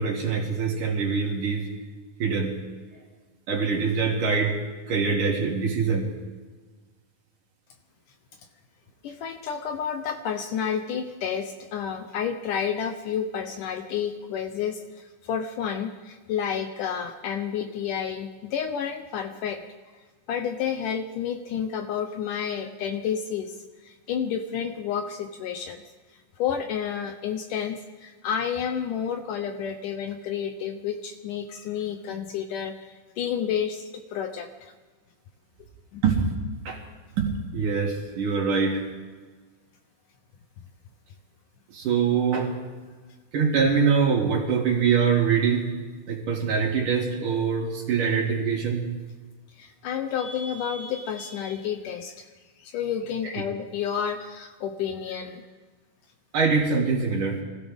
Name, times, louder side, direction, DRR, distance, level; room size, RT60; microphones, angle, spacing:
voice 1, 0.0-1.7 2.2-2.6 3.5-4.6 4.9-6.1 36.0-36.3 36.7-36.8 37.2-38.8 41.7-42.5 43.3-45.7 46.1-48.9 56.3-57.4, right 5 dB, 60° right, -2 dB, 3.8 m, -24 dB
voice 2, 9.0-19.6 20.3-23.6 23.8-25.8 26.4-34.7 35.9-36.0 49.6-52.3 52.6-55.5, left 8 dB, 70° left, 6 dB, 2.1 m, -30 dB
24.5 x 15.5 x 3.6 m, 1.4 s
omnidirectional pair, 4.3 m